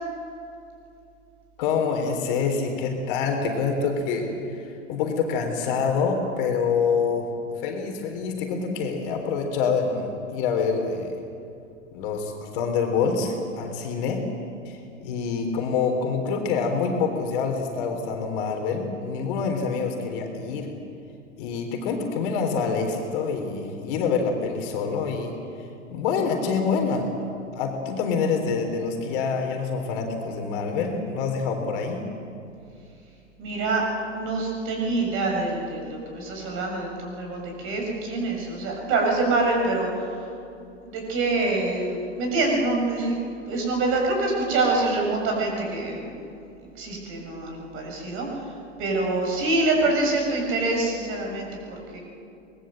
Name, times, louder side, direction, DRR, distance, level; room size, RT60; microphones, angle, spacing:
voice 1, 1.6-7.3 7.6-11.1 11.9-14.2 14.7-20.7 21.4-25.3 25.9-27.0 27.5-32.0, left 5 dB, 40° left, 3 dB, 3.8 m, -26 dB
voice 2, 33.4-33.8 34.1-39.9 40.8-46.1 46.8-48.3 48.8-52.0, right 2 dB, 35° right, 1 dB, 7.1 m, -25 dB
24.0 x 20.5 x 7.8 m, 2.6 s
figure-of-eight pair, 105°, 38 cm